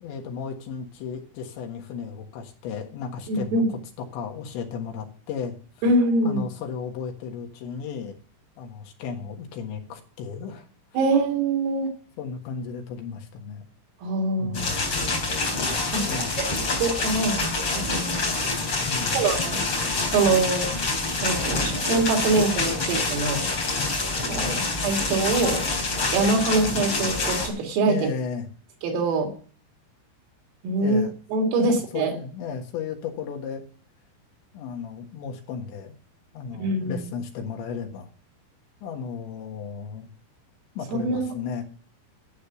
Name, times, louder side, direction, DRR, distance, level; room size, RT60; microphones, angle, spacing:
voice 1, 0.0-3.6 4.0-5.6 6.2-8.2 8.6-10.6 12.2-13.7 14.4-14.8 16.0-16.4 18.9-19.3 24.4-24.7 27.9-28.5 30.8-31.1 31.6-33.6 34.5-35.9 36.3-38.1 38.8-40.1 40.8-41.6, left 6 dB, 70° left, 3 dB, 3.6 m, -34 dB
voice 2, 3.3-3.7 5.8-6.4 11.0-11.9 14.0-14.6 15.9-16.1 16.4-16.5 16.8-18.2 19.1-19.6 20.1-20.7 21.2-23.4 24.3-25.6 26.1-28.1 28.8-29.3 30.6-31.0 31.3-32.1 36.6-37.1 40.9-41.3, right 3 dB, 80° right, 2 dB, 5.4 m, -24 dB
sound 1, 14.5-27.5, left 3 dB, 30° left, 4.1 m, -26 dB
12.0 x 8.6 x 7.0 m, 0.42 s
omnidirectional pair, 5.8 m